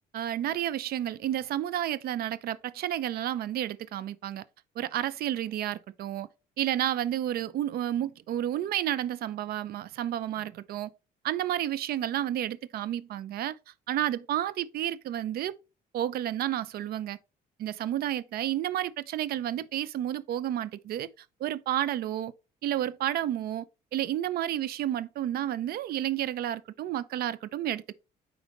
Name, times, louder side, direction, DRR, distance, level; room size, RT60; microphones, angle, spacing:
voice 1, 0.1-4.4 4.8-6.3 6.6-10.9 11.2-13.6 13.9-15.5 15.9-17.2 17.6-21.1 21.4-22.3 22.6-23.7 23.9-27.9, right 12 dB, 65° right, 0.7 m, -31 dB
9.2 x 4.8 x 3.1 m
cardioid pair, 110°, 17 cm